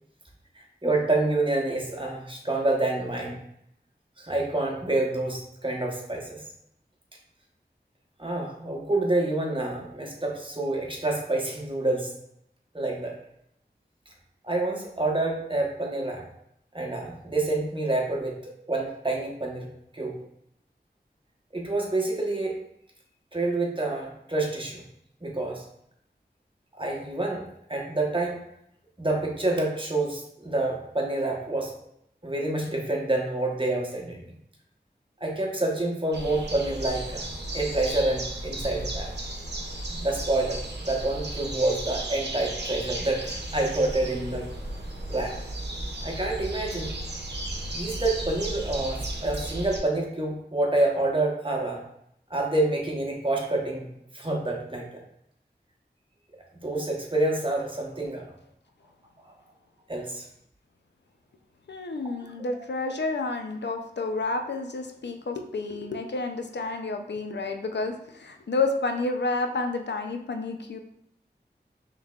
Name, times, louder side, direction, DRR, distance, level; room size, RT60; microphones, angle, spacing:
voice 1, 0.5-3.4 4.2-6.4 8.2-12.1 12.7-13.1 14.4-16.3 16.7-19.7 19.9-20.2 21.5-22.6 23.3-24.8 25.2-25.6 26.8-28.4 29.0-31.7 32.2-34.3 35.2-39.1 40.0-44.5 45.1-45.4 46.0-46.9 47.7-51.8 52.3-53.9 54.1-54.9 56.6-58.3 59.3-59.4 59.9-60.2 62.5-62.6, right 2 dB, 30° right, -1 dB, 1.0 m, -28 dB
sound 1, 36.1-49.8, right 1 dB, 70° right, 0.8 m, -34 dB
voice 2, 61.7-70.8, left 3 dB, 75° left, 5 dB, 0.5 m, -30 dB
5.5 x 3.2 x 2.3 m, 0.75 s
wide cardioid pair, 45°, 18 cm